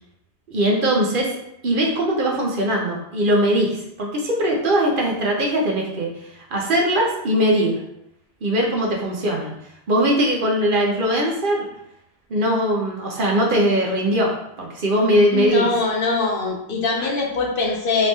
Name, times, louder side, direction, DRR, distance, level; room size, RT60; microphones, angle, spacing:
voice 1, 0.5-1.3 1.6-6.1 6.3-7.8 8.4-9.6 9.9-11.6 12.3-15.7 17.0-17.1, equal, 55° right, -1 dB, 0.8 m, -20 dB
voice 2, 15.3-18.1, left 3 dB, 60° left, 0 dB, 0.7 m, -22 dB
3.4 x 3.1 x 2.7 m, 0.79 s
omnidirectional pair, 1.1 m